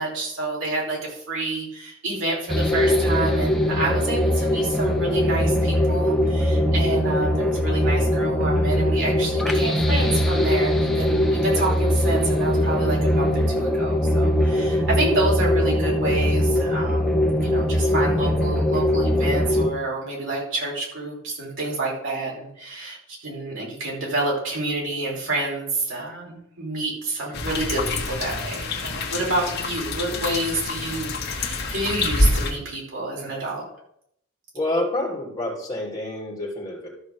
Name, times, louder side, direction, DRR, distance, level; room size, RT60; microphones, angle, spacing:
voice 1, 0.0-33.7, right 2 dB, 70° right, -4 dB, 5.1 m, -28 dB
sound 1, 2.5-19.7, left 1 dB, ahead, 1.1 m, -21 dB
sound 2, 27.3-32.5, left 2 dB, 55° left, 1.5 m, -26 dB
voice 2, 34.5-36.9, left 1 dB, 20° left, -3 dB, 3.1 m, -28 dB
13.0 x 5.0 x 6.6 m, 0.72 s
head